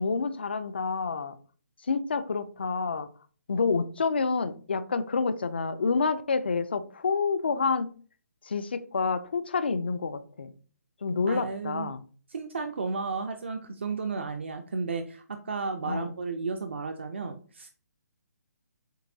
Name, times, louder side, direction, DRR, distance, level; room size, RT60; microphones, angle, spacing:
voice 1, 0.0-1.4 1.9-3.1 3.5-7.9 8.5-10.5 11.0-12.0 15.8-16.1, left 4 dB, 40° left, 0.4 m, -28 dB
voice 2, 11.3-11.9 12.3-17.7, right 4 dB, 45° right, 0.4 m, -33 dB
7.5 x 2.6 x 2.7 m
hypercardioid pair, 180°, 9 cm